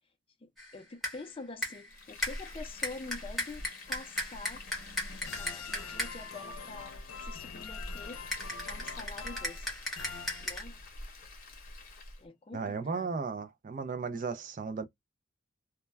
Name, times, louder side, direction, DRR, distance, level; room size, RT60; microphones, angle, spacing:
voice 1, 0.4-4.6 5.3-8.2 8.7-9.7 10.4-10.8 12.2-13.1, left 3 dB, 25° left, 0.4 m, -46 dB
sound 1, 0.6-0.8 1.0-1.3 1.6-1.9 2.2-6.3 8.3-10.6, left 1 dB, ahead, 0.8 m, -37 dB
Frying (food), 1.9-12.3, left 1 dB, 45° left, 0.8 m, -46 dB
sound 2, 2.1-11.0, left 6 dB, 85° left, 0.7 m, -47 dB
voice 2, 12.5-14.8, right 5 dB, 40° right, 0.3 m, -35 dB
2.2 x 2.2 x 3.1 m
head